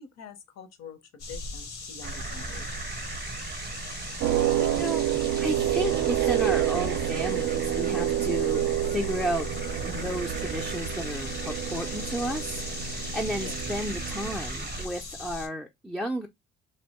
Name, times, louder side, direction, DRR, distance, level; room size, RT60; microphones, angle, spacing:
voice 1, 0.0-2.8 13.4-13.6, left 6 dB, 60° left, 0.8 m, -46 dB
sound 1, 1.2-15.5, left 3 dB, 80° left, 1.1 m, -41 dB
sound 2, 2.0-14.9, right 3 dB, 35° right, 0.6 m, -37 dB
sound 3, 4.2-14.4, right 12 dB, 70° right, 0.5 m, -28 dB
voice 2, 4.6-9.5 9.8-16.3, right 1 dB, ahead, 0.3 m, -33 dB
2.6 x 2.1 x 2.9 m
cardioid pair, 90°, 30 cm